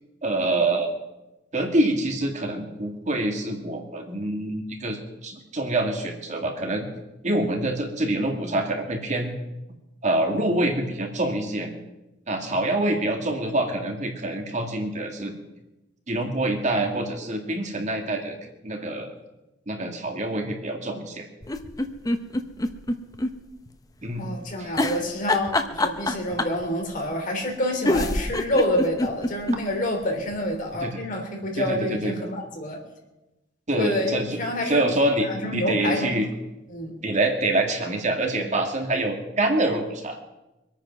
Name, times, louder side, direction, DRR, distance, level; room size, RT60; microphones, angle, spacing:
voice 1, 0.2-0.9 1.5-6.9 7.2-9.3 10.0-11.7 12.3-15.3 16.1-18.4 18.6-19.1 19.7-21.3 24.0-24.3 24.6-24.7 30.8-31.0 31.5-32.2 33.7-36.3 37.0-40.2, right 1 dB, 40° right, 3 dB, 2.1 m, -26 dB
sound 1, 21.4-23.3 23.7-23.8 24.7-26.6 27.5-27.6 27.8-29.6 30.0-30.1 30.3-30.4, left 1 dB, 20° left, 0.9 m, -25 dB
voice 2, 24.2-32.8 33.7-34.8 35.2-36.1 36.7-36.9, left 1 dB, 45° left, 2 dB, 3.3 m, -27 dB
23.5 x 9.2 x 6.0 m, 0.99 s
head